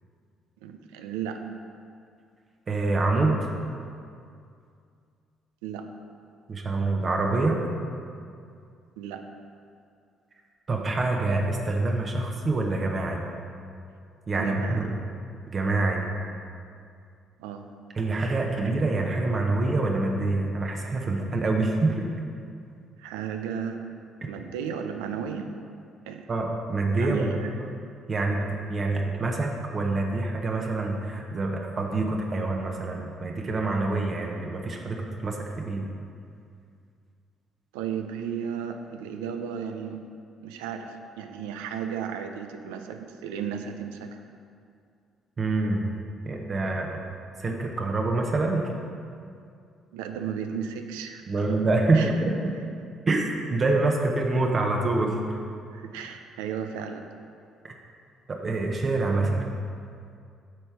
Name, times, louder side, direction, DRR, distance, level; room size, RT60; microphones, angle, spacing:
voice 1, 0.6-1.4 5.6-5.9 9.0-9.2 14.4-14.8 17.4-17.7 23.0-23.8 24.2-25.5 26.1-26.3 27.0-27.6 37.7-40.0 40.4-44.2 49.9-51.6 51.9-52.1 55.7-57.1, right 7 dB, 90° right, 6 dB, 0.4 m, -34 dB
voice 2, 2.7-3.5 6.5-7.6 10.7-13.2 14.3-15.0 15.5-16.1 18.0-22.1 24.2-24.3 26.3-27.7 28.1-35.8 45.4-45.9 46.2-47.0 47.4-48.6 51.3-52.5 53.1-55.4 57.6-57.7 58.3-59.6, right 2 dB, 40° right, 1 dB, 0.8 m, -26 dB
7.6 x 3.4 x 5.8 m, 2.4 s
supercardioid pair, 60°, 0 cm